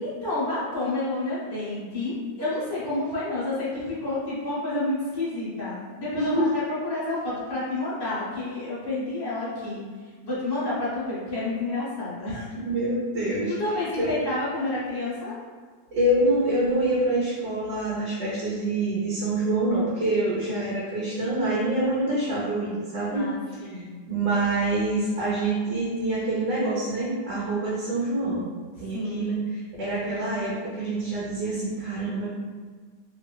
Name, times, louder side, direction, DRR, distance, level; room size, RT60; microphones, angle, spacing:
voice 1, 0.0-9.8 10.2-12.5 13.6-15.3 23.1-24.0 28.9-29.4, left 2 dB, 25° left, -10 dB, 0.5 m, -29 dB
voice 2, 6.1-6.5 12.5-13.5 13.9-14.1 15.9-23.3 23.6-23.8 24.1-28.5 28.8-32.3, right 1 dB, 75° right, -7 dB, 1.4 m, -26 dB
3.1 x 2.7 x 2.2 m, 1.5 s
omnidirectional pair, 2.0 m